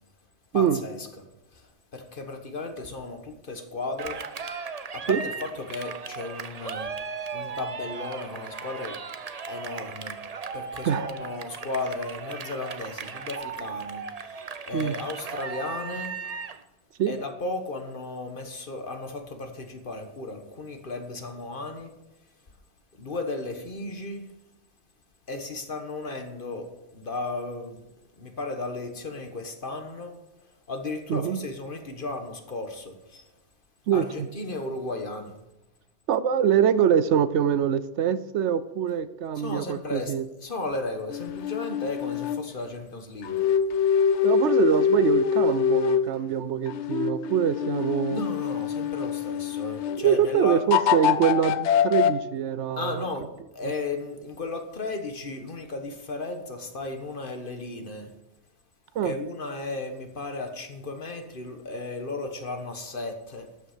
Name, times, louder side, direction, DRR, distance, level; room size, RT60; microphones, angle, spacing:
voice 1, 0.5-1.1 1.5-4.2 4.9-6.9 7.3-9.0 9.5-10.2 10.5-14.4 14.6-16.2 17.1-21.9 23.0-24.2 25.3-26.7 26.9-27.8 28.2-30.1 30.7-33.3 33.9-35.3 39.4-40.1 40.4-43.4 48.1-50.6 52.8-53.3 53.5-58.1 59.0-63.5, left 2 dB, 45° left, 6 dB, 1.5 m, -35 dB
Cheering, 4.0-16.6, right 5 dB, 40° right, 0.7 m, -37 dB
voice 2, 31.1-31.4 33.9-34.3 36.1-40.3 44.2-48.2 50.0-53.0 53.6-53.7 58.9-59.2, right 8 dB, 75° right, 15 dB, 0.9 m, -24 dB
sound 1, 41.1-42.4 43.2-46.1 46.7-50.0 50.7-52.1, left 7 dB, 70° left, 0.9 m, -24 dB
13.0 x 9.2 x 5.0 m, 0.95 s
omnidirectional pair, 1.2 m